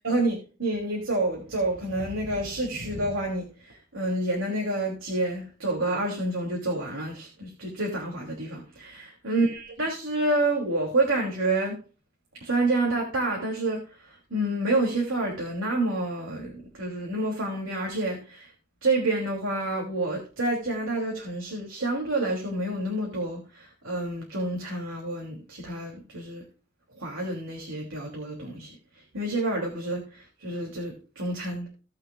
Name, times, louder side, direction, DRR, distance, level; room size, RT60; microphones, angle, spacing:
voice 1, 0.0-11.8 12.4-18.5 18.8-26.4 27.0-28.7 29.1-31.7, right 2 dB, 80° right, 3.0 m, -28 dB
18.0 x 6.5 x 2.4 m
head